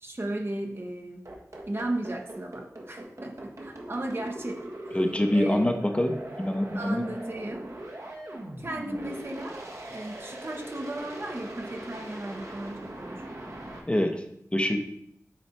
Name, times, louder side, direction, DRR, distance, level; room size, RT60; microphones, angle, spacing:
voice 1, 0.0-1.2 1.7-4.6 4.9-5.0 5.3-5.8 6.7-7.7 8.6-13.2, right 1 dB, 40° right, 3 dB, 1.0 m, -35 dB
sound 1, 1.3-13.8, right 1 dB, 60° right, 1.5 m, -41 dB
voice 2, 4.9-7.1 13.9-14.2 14.5-14.8, left 1 dB, 20° left, 5 dB, 0.8 m, -25 dB
9.0 x 4.0 x 4.4 m, 0.73 s
wide cardioid pair, 65°, 6 cm